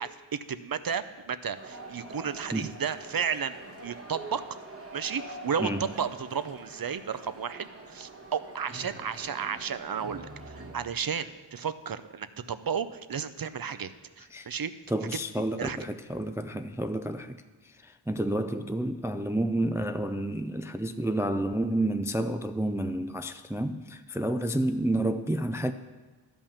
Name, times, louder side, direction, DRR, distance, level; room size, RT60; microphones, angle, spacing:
voice 1, 0.0-4.6 4.9-13.9 14.2-14.7 15.6-15.8, right 7 dB, 45° right, 0.6 m, -33 dB
sound 1, 1.5-10.7, right 2 dB, 30° right, 1.3 m, -45 dB
voice 2, 5.6-5.9 14.3-14.5 14.9-17.4 17.6-25.7, right 1 dB, 5° right, 0.4 m, -30 dB
12.0 x 5.4 x 7.2 m
wide cardioid pair, 55°, 48 cm